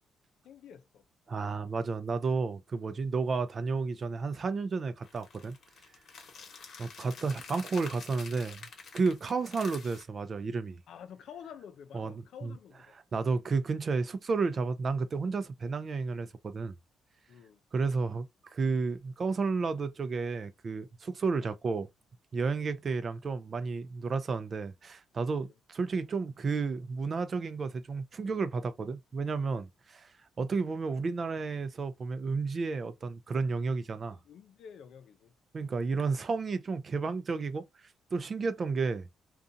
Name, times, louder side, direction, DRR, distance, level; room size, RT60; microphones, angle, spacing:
voice 1, 0.4-1.1 6.3-6.5 10.9-13.0 17.3-17.6 22.5-22.6 25.4-25.5 34.1-35.3, left 8 dB, 70° left, 0.5 m, -50 dB
voice 2, 1.3-5.6 6.8-8.7 8.9-10.8 11.9-12.1 12.4-12.5 13.1-16.7 17.7-21.9 22.3-30.1 30.4-34.2 35.5-37.7 38.1-39.1, right 4 dB, 40° right, 0.5 m, -32 dB
sound 1, 5.0-10.0, left 5 dB, 55° left, 1.0 m, -48 dB
2.5 x 2.4 x 2.6 m
cardioid pair, 90°, 0 cm